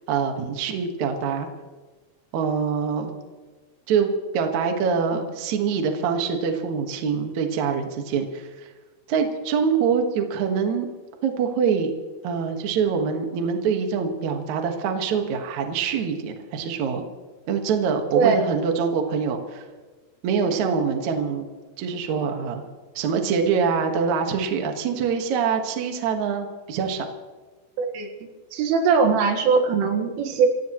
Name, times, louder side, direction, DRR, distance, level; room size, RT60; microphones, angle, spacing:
voice 1, 0.1-1.5 2.3-3.1 3.9-4.1 4.3-8.5 9.1-10.9 11.2-11.9 12.2-17.0 17.5-19.6 20.2-21.5 21.8-22.6 22.9-27.1, right 6 dB, 55° right, 4 dB, 2.2 m, -24 dB
voice 2, 27.8-28.1 28.5-30.5, right 5 dB, 90° right, 4 dB, 4.3 m, -20 dB
27.5 x 16.5 x 3.2 m, 1.3 s
omnidirectional pair, 5.6 m